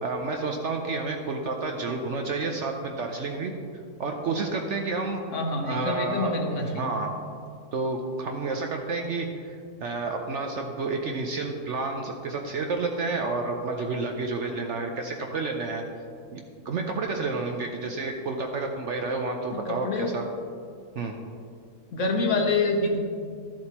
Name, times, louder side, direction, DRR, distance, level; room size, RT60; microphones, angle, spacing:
voice 1, 0.0-3.5 4.0-5.2 5.6-7.1 7.7-9.6 9.8-15.8 16.3-20.2 21.0-21.1, right 3 dB, 60° right, 3 dB, 0.8 m, -30 dB
voice 2, 5.3-6.9 19.5-20.1 21.9-23.0, left 3 dB, 55° left, 2 dB, 1.1 m, -26 dB
12.5 x 7.4 x 3.0 m, 2.3 s
omnidirectional pair, 1.7 m